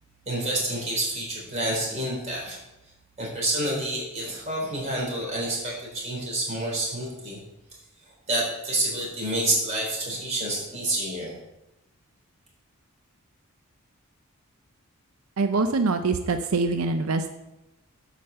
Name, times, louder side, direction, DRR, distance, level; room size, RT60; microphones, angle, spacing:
voice 1, 0.3-2.6 3.2-7.4 8.3-11.3, right 1 dB, 35° right, -3 dB, 3.5 m, -28 dB
voice 2, 15.4-17.3, right 3 dB, 90° right, 8 dB, 0.6 m, -24 dB
8.7 x 5.1 x 6.7 m, 0.94 s
head